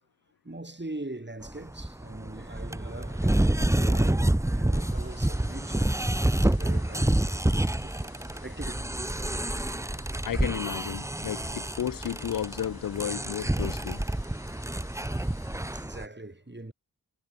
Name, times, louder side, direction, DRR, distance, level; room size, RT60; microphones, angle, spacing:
voice 1, 0.4-5.9 6.3-7.4 7.6-8.1 8.4-9.7 10.2-10.4 14.7-14.8 15.0-16.7, right 2 dB, 30° right, 5.3 m, -42 dB
sound 1, 1.4-16.1, right 1 dB, 10° right, 0.8 m, -28 dB
sound 2, 4.7-15.9, left 4 dB, 85° left, 2.9 m, -56 dB
Growling, 7.9-11.8 13.1-13.3 13.7-14.9, right 3 dB, 55° right, 5.1 m, -60 dB
voice 2, 10.2-14.0, left 10 dB, 70° left, 0.5 m, -33 dB
wide cardioid pair, 50°, 35 cm